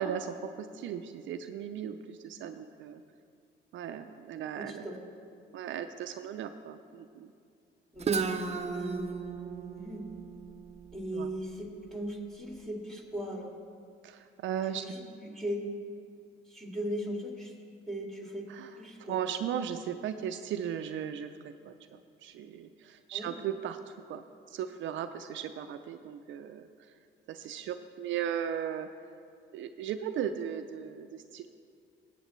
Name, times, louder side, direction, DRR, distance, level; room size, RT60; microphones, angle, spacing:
voice 1, 0.0-3.0 3.7-4.8 5.5-7.3 11.1-11.3 14.0-15.0 18.5-18.7 19.1-23.8 24.1-24.2 24.5-26.6 27.3-28.9 29.5-31.5, right 9 dB, 75° right, 8 dB, 0.5 m, -37 dB
voice 2, 4.6-4.9 7.9-10.1 10.9-13.5 14.7-15.6 16.5-17.5 17.9-18.5 18.8-19.2 23.1-23.3, equal, ahead, -1 dB, 2.2 m, -38 dB
Guitar, 8.0-11.8, right 5 dB, 35° right, 0.6 m, -35 dB
16.5 x 8.2 x 3.1 m, 2.4 s
cardioid pair, 90°, 20 cm